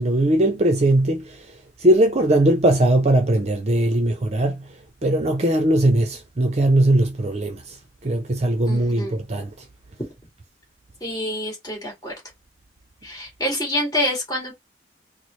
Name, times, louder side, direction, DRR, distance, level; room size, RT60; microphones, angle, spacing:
voice 1, 0.0-1.5 1.8-4.7 5.0-7.8 8.0-9.5, right 1 dB, 35° right, 0.6 m, -19 dB
voice 2, 8.6-9.2 11.0-12.1 13.0-14.5, left 1 dB, 20° left, 1.9 m, -27 dB
4.3 x 2.1 x 3.1 m
head